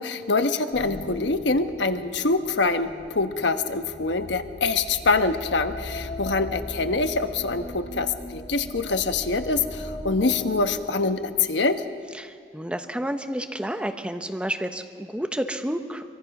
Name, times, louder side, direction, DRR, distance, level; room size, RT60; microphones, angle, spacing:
voice 1, 0.0-11.8, left 3 dB, 80° left, 8 dB, 1.2 m, -25 dB
sound 1, 0.7-11.5, left 1 dB, 35° left, 4.1 m, -38 dB
voice 2, 12.1-16.0, right 1 dB, 5° right, 6 dB, 1.0 m, -30 dB
24.0 x 23.5 x 6.0 m, 2.1 s
head